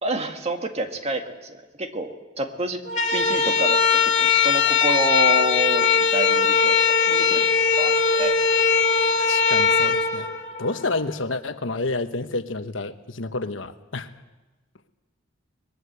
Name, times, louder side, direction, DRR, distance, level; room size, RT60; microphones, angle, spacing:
voice 1, 0.0-2.8 3.1-7.5 7.8-8.4, right 2 dB, 35° right, 5 dB, 1.9 m, -28 dB
sound 1, 2.9-11.0, left 6 dB, 40° left, 2.2 m, -20 dB
voice 2, 9.3-10.3 10.6-14.1, left 3 dB, 80° left, 9 dB, 1.2 m, -29 dB
21.5 x 21.0 x 8.1 m, 1.2 s
head